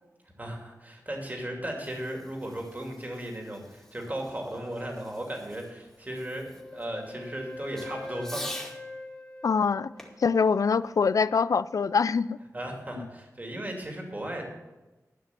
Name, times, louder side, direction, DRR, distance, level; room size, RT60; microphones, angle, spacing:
voice 1, 0.4-8.4 12.5-14.4, right 1 dB, 30° right, 2.7 m, -36 dB
Fireworks, 1.7-8.8 10.0-11.6, left 1 dB, 10° left, 2.2 m, -46 dB
Wind instrument woodwind instrument, 6.2-10.4, left 2 dB, 25° left, 1.7 m, -43 dB
voice 2, 9.4-9.9 10.2-12.4 13.0-13.1, left 5 dB, 75° left, 0.4 m, -24 dB
11.5 x 5.9 x 8.3 m
wide cardioid pair, 85°, 6 cm